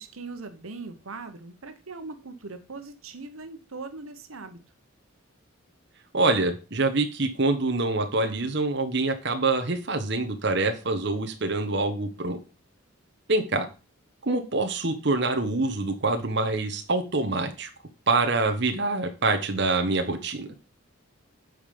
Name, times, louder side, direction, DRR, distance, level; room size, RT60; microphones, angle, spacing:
voice 1, 0.0-4.6, right 3 dB, 90° right, 8 dB, 1.2 m, -40 dB
voice 2, 6.1-12.4 13.3-13.6 14.2-17.7 18.1-20.5, right 3 dB, 55° right, 5 dB, 1.2 m, -25 dB
9.3 x 5.1 x 5.3 m, 0.33 s
head